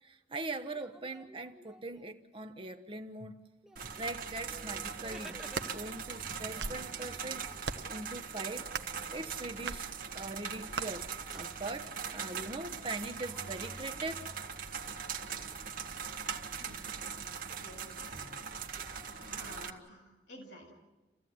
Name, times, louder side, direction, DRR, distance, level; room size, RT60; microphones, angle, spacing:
voice 1, 0.0-3.4 4.0-5.4 5.7-7.5 7.9-8.7 9.1-9.9 10.1-14.2, right 2 dB, 30° right, 1.1 m, -41 dB
sound 1, 0.7-2.4 3.1-3.2 3.6-6.1 6.5-11.7 12.0-14.4 17.5-19.8, equal, 5° right, 0.7 m, -57 dB
sound 2, 3.8-19.7, right 6 dB, 50° right, 1.5 m, -41 dB
sound 3, 5.4-5.7 6.4-6.9 7.6-8.0 8.7-9.0 9.7-9.8 10.7-10.9, right 4 dB, 65° right, 1.1 m, -38 dB
voice 2, 17.6-18.3 19.2-20.7, left 1 dB, 85° left, 7.7 m, -52 dB
29.5 x 16.0 x 9.5 m
head